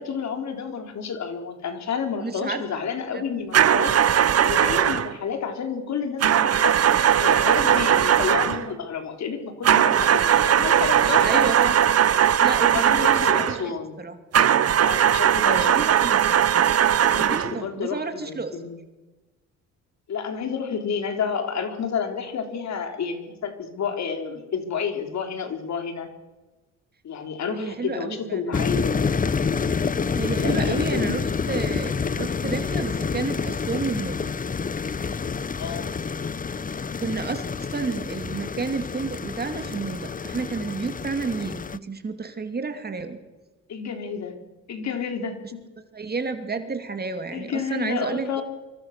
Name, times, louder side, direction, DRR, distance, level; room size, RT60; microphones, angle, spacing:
voice 1, 0.0-3.9 4.4-6.8 7.2-11.4 12.7-14.0 14.8-15.7 17.1-18.8 20.1-26.1 27.0-29.2 30.4-31.2 35.6-35.9 43.7-44.4 44.7-45.6 47.3-48.4, left 6 dB, 65° left, 5 dB, 3.9 m, -30 dB
voice 2, 2.2-2.6 3.1-3.2 11.2-11.8 12.4-14.1 15.4-16.7 17.2-18.6 27.5-28.5 30.1-34.3 37.0-43.2 45.9-48.4, right 4 dB, 30° right, 7 dB, 2.7 m, -31 dB
sound 1, 3.5-5.1 6.2-8.7 9.6-13.6 14.3-17.6, right 9 dB, 55° right, 1.1 m, -19 dB
sound 2, 28.5-41.8, left 5 dB, 30° left, 0.8 m, -28 dB
25.0 x 24.0 x 6.8 m, 1.2 s
cardioid pair, 90°, 30 cm